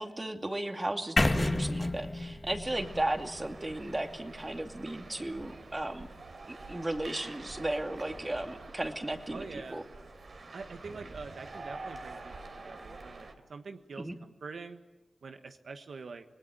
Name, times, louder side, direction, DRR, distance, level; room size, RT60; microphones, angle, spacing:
voice 1, 0.0-6.1 6.5-9.8 14.0-14.2, right 1 dB, 25° right, 5 dB, 2.6 m, -35 dB
sound 1, 1.2-5.1, left 1 dB, 30° left, 2.0 m, -32 dB
sound 2, 2.7-13.3, right 3 dB, 70° right, 3.3 m, -47 dB
voice 2, 9.3-9.9 10.5-14.1 14.4-14.8 15.2-16.2, right 4 dB, 85° right, 6 dB, 1.3 m, -45 dB
26.5 x 19.0 x 9.3 m, 1.1 s
cardioid pair, 55°, 0 cm